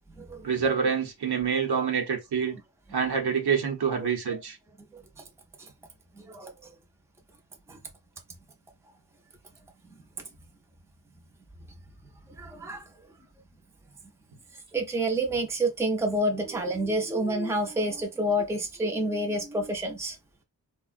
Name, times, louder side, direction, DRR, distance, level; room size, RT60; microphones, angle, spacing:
voice 1, 0.4-2.6 2.9-4.6, right 6 dB, 75° right, 0.9 m, -26 dB
voice 2, 6.2-6.7 7.7-7.8 12.4-12.8 14.7-20.2, right 1 dB, 5° right, 0.6 m, -28 dB
3.5 x 2.2 x 2.4 m
cardioid pair, 75°, 40 cm